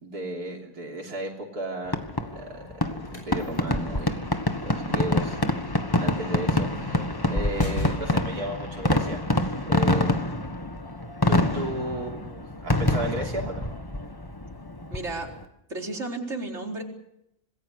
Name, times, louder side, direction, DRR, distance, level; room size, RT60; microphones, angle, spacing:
voice 1, 0.0-2.6 3.1-5.4 6.0-7.0 7.3-10.7 11.3-13.7, right 1 dB, 85° right, 0 dB, 3.9 m, -34 dB
Fireworks, 1.9-15.4, left 1 dB, 15° left, 1.4 m, -26 dB
sound 1, 2.9-8.4, left 1 dB, 65° left, 7.5 m, -38 dB
voice 2, 14.9-15.3 15.7-16.8, right 2 dB, 45° right, 0 dB, 4.6 m, -33 dB
26.5 x 20.0 x 6.5 m, 0.81 s
omnidirectional pair, 1.6 m